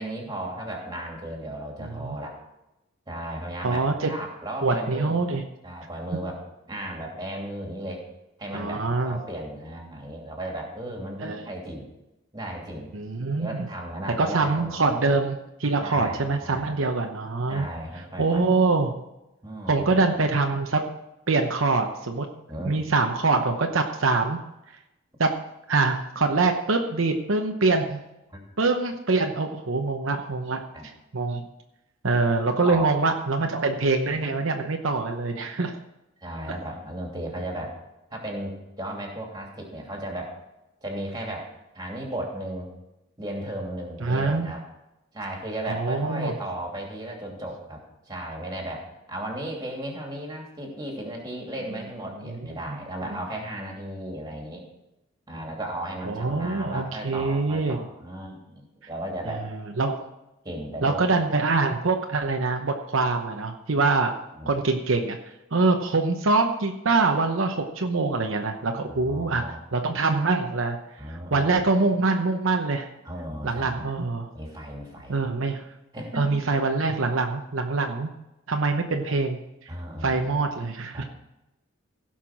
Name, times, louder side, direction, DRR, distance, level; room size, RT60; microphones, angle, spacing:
voice 1, 0.0-2.4 3.1-3.8 4.1-5.2 5.6-8.0 8.4-11.9 12.3-12.9 13.4-14.9 15.8-17.0 17.5-18.4 19.4-20.0 22.5-22.7 28.3-28.4 30.7-30.9 32.6-32.9 33.4-33.5 35.5-35.6 36.2-37.7 38.1-40.3 40.8-41.5 41.7-42.7 43.2-44.6 45.1-54.7 55.3-59.5 60.4-61.0 64.3-64.5 68.6-69.6 71.0-71.5 73.0-73.9 74.3-75.2 75.9-76.4 79.7-80.5 80.9-81.1, right 1 dB, 20° right, 0 dB, 2.7 m, -35 dB
voice 2, 1.8-2.2 3.6-4.1 4.6-5.4 8.5-9.2 11.2-11.5 12.9-13.7 14.2-17.7 18.2-18.9 19.7-20.9 21.3-22.3 22.7-24.4 25.2-25.3 25.7-28.0 28.6-30.6 31.1-31.4 32.0-35.7 44.0-44.5 45.7-46.3 52.2-52.4 52.7-52.8 56.0-57.9 59.3-59.4 59.8-60.0 60.8-64.1 64.5-65.2 65.5-69.4 69.7-70.8 71.1-72.9 73.4-74.3 75.1-75.7 76.1-78.1 78.5-79.7 80.0-81.0, right 3 dB, 70° right, 4 dB, 0.9 m, -24 dB
16.0 x 5.9 x 6.0 m, 0.93 s
head